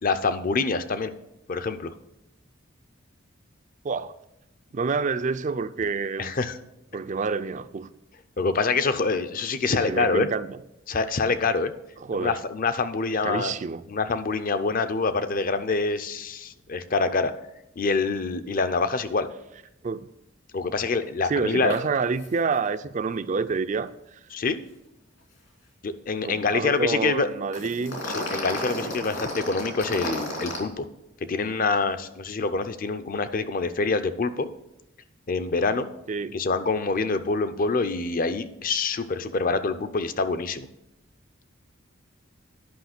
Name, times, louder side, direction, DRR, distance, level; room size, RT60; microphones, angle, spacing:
voice 1, 0.0-1.1 1.5-1.9 6.2-6.5 8.4-10.3 10.9-11.7 12.1-13.6 13.9-17.3 17.8-19.3 20.5-21.7 24.3-24.6 25.8-27.3 28.1-30.9 31.2-34.5 35.3-35.9 36.3-40.7, left 4 dB, 45° left, 0.6 m, -26 dB
voice 2, 4.7-6.3 6.9-7.9 9.7-10.6 12.0-12.4 13.2-13.8 19.8-20.1 21.2-24.2 26.2-28.0 36.1-36.4, right 4 dB, 40° right, 0.4 m, -28 dB
sound 1, 21.7-21.8 22.1-22.3 22.5-22.7 27.5-30.6, left 1 dB, 70° left, 2.8 m, -32 dB
10.5 x 5.6 x 6.0 m
head